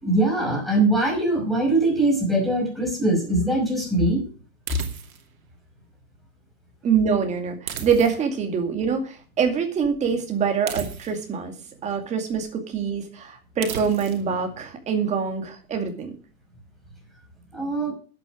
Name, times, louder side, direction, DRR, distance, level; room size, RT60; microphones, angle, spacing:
voice 1, 0.0-4.3 17.5-17.9, right 2 dB, ahead, -1 dB, 5.3 m, -22 dB
sound 1, 4.7-5.3 7.7-8.4 10.7-11.4 13.6-14.3, right 7 dB, 70° right, 2.7 m, -34 dB
voice 2, 6.8-11.6 11.8-16.1, right 6 dB, 15° right, 4 dB, 2.3 m, -25 dB
11.0 x 8.5 x 6.2 m, 0.38 s
hypercardioid pair, 150°, 43 cm